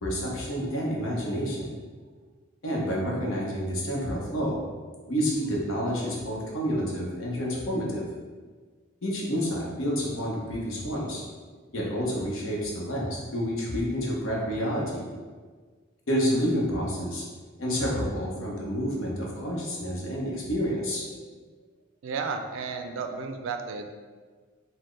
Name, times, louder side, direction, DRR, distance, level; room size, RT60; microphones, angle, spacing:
voice 1, 0.0-1.7 2.6-4.6 5.1-8.0 9.0-11.2 11.7-15.0 16.1-17.2 17.6-21.2, equal, 80° left, -3 dB, 0.8 m, -29 dB
voice 2, 22.0-23.9, right 5 dB, 70° right, 6 dB, 0.3 m, -33 dB
4.0 x 2.1 x 3.1 m, 1.5 s
head